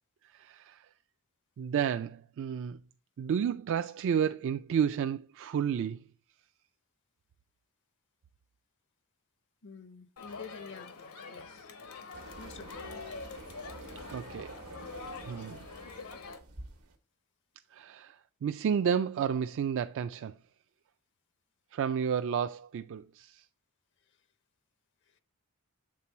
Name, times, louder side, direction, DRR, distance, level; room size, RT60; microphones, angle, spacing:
voice 1, 0.3-0.8 1.6-2.8 3.2-6.0 14.1-14.6 15.2-15.6 17.7-20.3 21.7-23.4, right 7 dB, 60° right, 0.3 m, -31 dB
voice 2, 9.6-11.0 11.3-11.7 12.4-13.2, left 5 dB, 55° left, 0.5 m, -49 dB
Crowd, 10.2-16.4, left 4 dB, 85° left, 1.0 m, -45 dB
sound 1, 12.1-17.0, right 2 dB, 80° right, 1.1 m, -48 dB
7.4 x 3.8 x 4.2 m
head